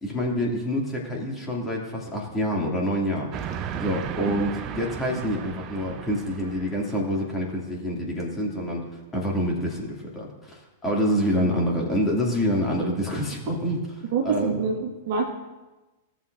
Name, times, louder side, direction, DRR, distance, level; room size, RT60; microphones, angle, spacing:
voice 1, 0.0-3.3 3.8-8.9 9.1-13.8 14.2-14.6, equal, 15° left, -2 dB, 2.5 m, -27 dB
Train, 3.3-7.2, right 9 dB, 35° right, 0.6 m, -35 dB
voice 2, 14.1-15.3, right 5 dB, 55° right, 1 dB, 1.7 m, -26 dB
17.0 x 7.2 x 2.6 m, 1.1 s
figure-of-eight pair, 95°, 0 cm